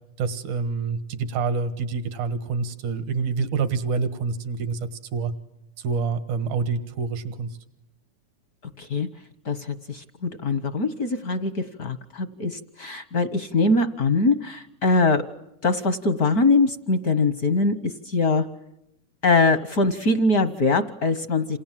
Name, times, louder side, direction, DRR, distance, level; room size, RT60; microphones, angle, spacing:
voice 1, 0.2-4.8 5.1-5.3 5.8-7.6, right 5 dB, 85° right, 11 dB, 3.0 m, -27 dB
voice 2, 8.8-9.1 9.4-15.2 15.6-18.5 19.2-21.6, left 3 dB, 60° left, 12 dB, 1.0 m, -22 dB
28.0 x 28.0 x 7.5 m, 0.84 s
omnidirectional pair, 3.4 m